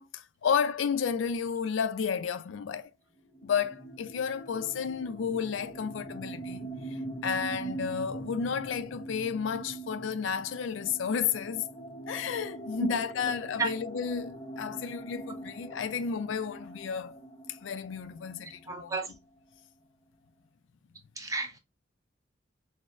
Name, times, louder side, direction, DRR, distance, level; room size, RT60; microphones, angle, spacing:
voice 1, 0.0-2.9 3.4-11.7 12.1-17.2 17.5-19.2, left 6 dB, 80° left, 0.4 m, -32 dB
sound 1, 3.3-18.9, right 2 dB, 25° left, 0.9 m, -43 dB
voice 2, 18.7-19.1 21.2-21.6, right 4 dB, 15° right, 0.6 m, -31 dB
6.0 x 2.0 x 2.4 m
head